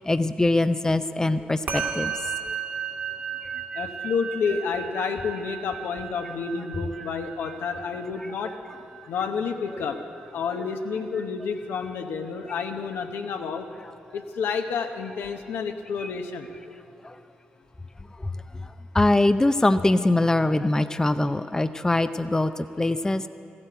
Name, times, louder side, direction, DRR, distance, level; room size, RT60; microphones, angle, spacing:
voice 1, 0.0-2.1 16.0-16.1 17.0-17.2 18.9-23.3, left 2 dB, 15° left, 11 dB, 0.5 m, -22 dB
Musical instrument, 1.7-11.2, right 7 dB, 60° right, 2.3 m, -35 dB
voice 2, 3.7-8.5 9.1-10.0 10.3-13.7 14.1-16.5, left 5 dB, 75° left, 5 dB, 1.0 m, -30 dB
15.0 x 8.8 x 8.0 m, 2.7 s
hypercardioid pair, 50°, 4 cm